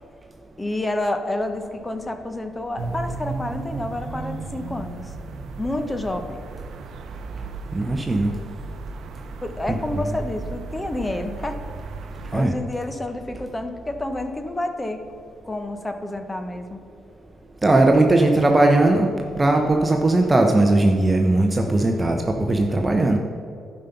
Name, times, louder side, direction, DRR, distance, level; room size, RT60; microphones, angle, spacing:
voice 1, 0.6-5.1 5.6-6.4 9.4-11.6 12.3-15.1 15.4-16.8, left 1 dB, 15° left, 7 dB, 0.9 m, -29 dB
sound 1, 2.8-12.5, right 3 dB, 70° right, 0.8 m, -35 dB
voice 2, 7.7-8.3 12.3-12.5 17.6-19.1 19.4-23.2, right 2 dB, 20° right, 2 dB, 0.8 m, -18 dB
11.0 x 5.3 x 5.8 m, 2.4 s
cardioid pair, 90°, 0 cm